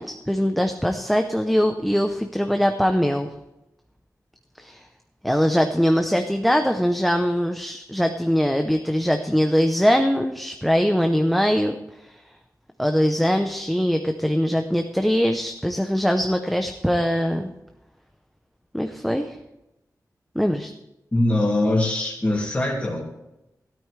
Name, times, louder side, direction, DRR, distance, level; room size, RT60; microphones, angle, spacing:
voice 1, 0.0-3.3 4.6-4.8 5.2-11.8 12.0-12.1 12.8-17.5 18.7-19.4 20.3-20.7, equal, ahead, 5 dB, 0.7 m, -22 dB
voice 2, 21.1-23.0, left 1 dB, 20° left, -3 dB, 2.5 m, -22 dB
13.5 x 12.5 x 3.3 m, 0.91 s
wide cardioid pair, 130°, 7 cm